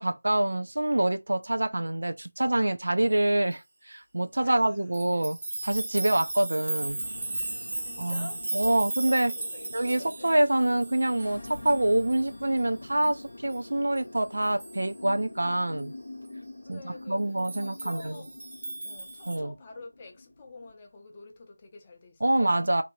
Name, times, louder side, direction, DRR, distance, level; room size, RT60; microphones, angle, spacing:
voice 1, 0.0-5.4 5.6-7.1 8.0-8.3 8.5-9.3 9.7-15.9 16.7-18.2 19.3-19.5 22.2-22.8, right 1 dB, 65° right, 0.4 m, -26 dB
voice 2, 4.4-4.9 7.3-10.3 16.6-18.3 18.8-22.6, left 3 dB, 20° left, 0.5 m, -48 dB
sound 1, 4.9-12.3 12.6-12.7 13.0-13.1 13.5-13.6 14.0-14.1 14.4-14.9 17.4-19.4, right 2 dB, 40° right, 0.8 m, -36 dB
sound 2, 6.8-20.7, left 2 dB, 55° left, 0.6 m, -46 dB
2.6 x 2.6 x 2.9 m
figure-of-eight pair, 170°, 0 cm